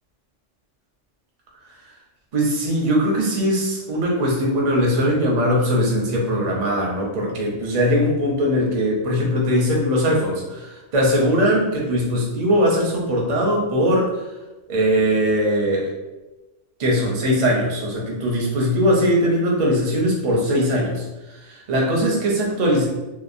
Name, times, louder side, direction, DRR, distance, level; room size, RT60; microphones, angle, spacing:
voice 1, 2.3-14.1 14.7-15.9 16.8-21.0 21.3-22.9, equal, 50° right, -2 dB, 0.5 m, -20 dB
2.8 x 2.0 x 2.4 m, 1.1 s
omnidirectional pair, 1.3 m